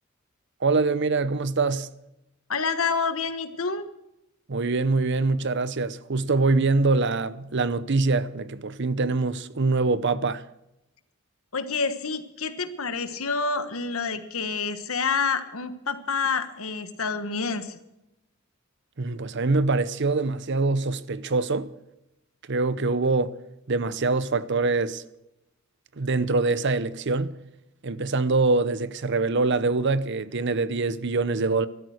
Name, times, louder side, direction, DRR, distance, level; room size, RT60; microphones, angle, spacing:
voice 1, 0.6-1.9 4.5-10.5 19.0-21.7 22.4-23.3 23.7-25.0 25.9-27.4 27.8-31.7, right 3 dB, 55° right, 0.8 m, -24 dB
voice 2, 2.5-3.9 11.5-17.8, left 4 dB, 80° left, 1.4 m, -28 dB
14.5 x 12.5 x 6.5 m
head